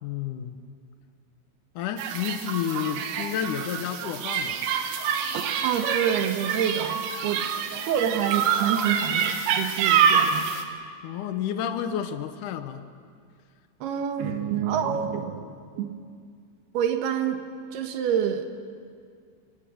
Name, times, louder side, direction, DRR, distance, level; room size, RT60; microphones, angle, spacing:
voice 1, 0.0-0.6 1.8-4.7 11.0-12.9, left 9 dB, 80° left, 9 dB, 1.8 m, -31 dB
sound 1, 2.0-10.6, right 7 dB, 90° right, 3.6 m, -26 dB
voice 2, 5.6-7.4 7.8-10.5 13.8-15.4 15.8-16.0 16.7-17.4 17.7-18.5, right 8 dB, 70° right, 6 dB, 3.2 m, -27 dB
25.0 x 25.0 x 6.4 m, 2.1 s
omnidirectional pair, 5.0 m